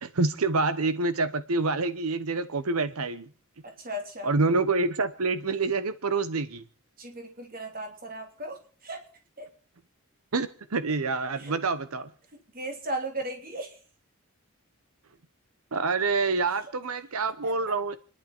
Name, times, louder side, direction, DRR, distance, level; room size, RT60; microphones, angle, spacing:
voice 1, 0.0-3.3 4.2-6.6 10.3-12.1 15.7-18.0, right 3 dB, 85° right, 0.9 m, -27 dB
voice 2, 3.8-4.3 7.0-8.6 8.8-9.0 9.4-9.5 11.4-11.5 12.5-13.8 17.4-17.5, right 1 dB, 40° right, 3.0 m, -36 dB
29.0 x 11.0 x 4.5 m
head